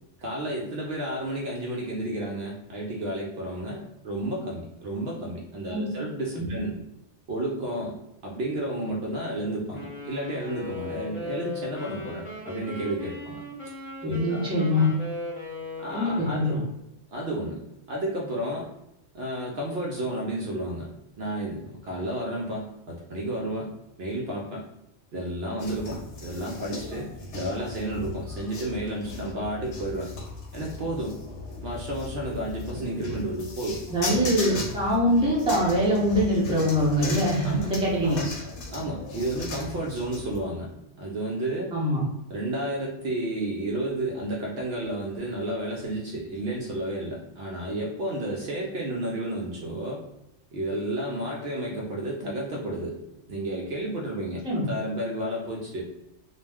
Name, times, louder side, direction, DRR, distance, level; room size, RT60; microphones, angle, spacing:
voice 1, 0.2-6.8 7.3-13.4 14.0-14.5 15.8-16.6 17.1-17.6 17.9-18.7 19.1-20.9 21.2-23.7 24.0-24.7 25.1-30.1 30.5-31.2 31.6-33.8 34.2-34.6 37.4-37.7 38.0-38.3 38.7-40.7 41.0-41.7 42.3-50.0 50.5-53.0 53.3-54.4 54.7-55.8, right 1 dB, 65° right, -2 dB, 0.7 m, -32 dB
Wind instrument woodwind instrument, 9.7-16.7, left 2 dB, 40° left, 1.0 m, -38 dB
voice 2, 14.0-14.8 15.9-16.5 33.9-38.2 41.7-42.0 54.4-54.7, equal, 5° right, -6 dB, 0.6 m, -23 dB
sound 1, 25.6-40.4, left 3 dB, 70° left, 0.9 m, -37 dB
2.3 x 2.1 x 3.3 m, 0.87 s
omnidirectional pair, 1.3 m